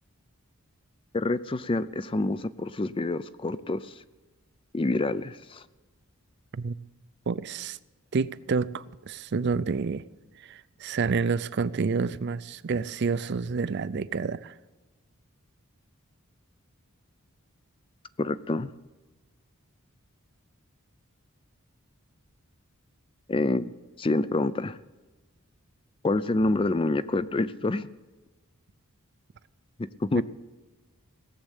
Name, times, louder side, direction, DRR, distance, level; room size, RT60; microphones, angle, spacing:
voice 1, 1.1-4.0 4.7-5.6 18.2-18.7 23.3-24.8 26.0-27.9 29.8-30.2, left 2 dB, 25° left, 0.4 m, -27 dB
voice 2, 7.3-7.8 8.1-10.0 10.4-14.5 30.2-30.3, right 5 dB, 50° right, 0.4 m, -29 dB
17.5 x 7.4 x 8.2 m
head